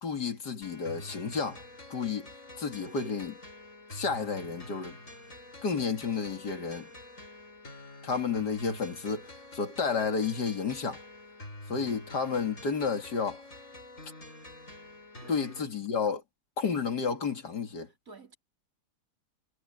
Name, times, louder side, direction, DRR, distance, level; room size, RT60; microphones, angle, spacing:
voice 1, 0.0-1.6 1.9-2.3 2.6-3.4 3.9-5.0 5.6-6.9 8.0-11.0 11.7-13.4 15.3-16.2 16.6-17.9, left 5 dB, 80° left, 2.9 m, -31 dB
sound 1, 0.6-15.6, left 1 dB, 50° left, 7.0 m, -47 dB
voice 2, 15.2-15.7 18.1-18.4, right 3 dB, 55° right, 4.3 m, -51 dB
omnidirectional pair, 1.7 m